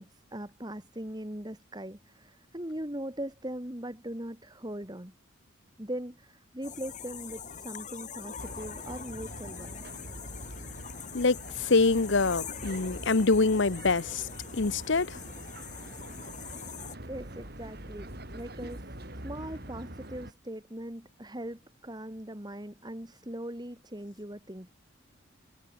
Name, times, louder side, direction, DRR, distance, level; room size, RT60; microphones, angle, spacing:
voice 1, 0.0-5.1 5.8-9.8 17.1-19.0 19.2-24.7, right 1 dB, 20° right, 2.5 m, -40 dB
sound 1, 6.6-17.0, left 7 dB, 35° left, 3.4 m, -43 dB
sound 2, 8.4-20.3, right 1 dB, 50° right, 4.6 m, -44 dB
voice 2, 11.1-15.2, left 3 dB, 60° left, 0.9 m, -25 dB
head